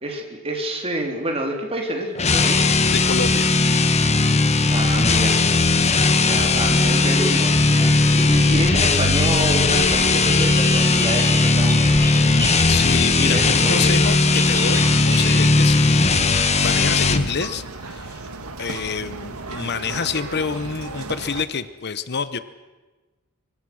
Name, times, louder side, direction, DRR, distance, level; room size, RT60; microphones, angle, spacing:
voice 1, 0.0-2.6 4.7-5.4 6.1-12.5 13.1-14.0, right 1 dB, 25° right, 2 dB, 3.8 m, -28 dB
sound 1, 2.2-17.3, left 3 dB, 30° left, 1.3 m, -18 dB
voice 2, 2.9-3.5 12.7-16.3 16.6-18.3 18.6-22.4, left 6 dB, 50° left, 13 dB, 0.9 m, -27 dB
sound 2, 6.4-15.3, left 1 dB, 10° left, 4.7 m, -32 dB
sound 3, 14.4-21.4, right 3 dB, 80° right, 1.8 m, -35 dB
25.0 x 24.0 x 6.3 m, 1.2 s
head